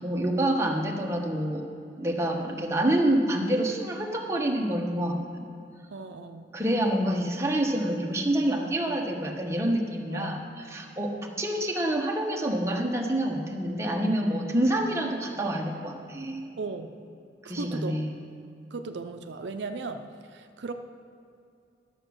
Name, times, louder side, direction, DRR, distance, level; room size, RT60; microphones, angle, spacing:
voice 1, 0.0-1.6 2.0-5.4 6.5-16.4 17.4-18.1, right 1 dB, 15° right, 0 dB, 1.1 m, -27 dB
voice 2, 5.9-6.5 8.5-9.3 10.1-10.4 16.6-16.9 17.4-18.0 18.7-20.7, right 3 dB, 80° right, 7 dB, 0.6 m, -37 dB
12.0 x 7.0 x 6.3 m, 2.5 s
head